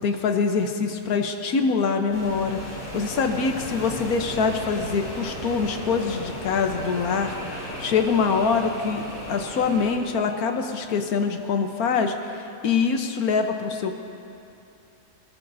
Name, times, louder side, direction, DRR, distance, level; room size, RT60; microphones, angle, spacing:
voice 1, 0.0-9.0 9.3-14.0, left 5 dB, 90° left, 5 dB, 1.4 m, -24 dB
sound 1, 2.1-10.0, equal, 65° left, 3.5 m, -36 dB
21.0 x 20.0 x 2.7 m, 2.7 s
omnidirectional pair, 1.5 m